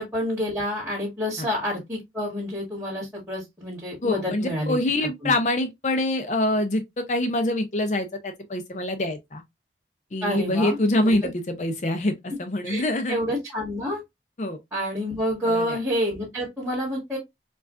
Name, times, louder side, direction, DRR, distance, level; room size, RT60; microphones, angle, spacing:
voice 1, 0.0-4.8 5.2-5.3 10.2-10.8 11.0-11.2 12.6-12.8 13.1-14.0 14.7-17.2, equal, 10° right, 1.8 m, -28 dB
voice 2, 4.0-9.4 10.1-13.2 14.4-14.6 15.4-15.8, left 1 dB, 40° left, 0.5 m, -25 dB
4.7 x 2.4 x 2.4 m
head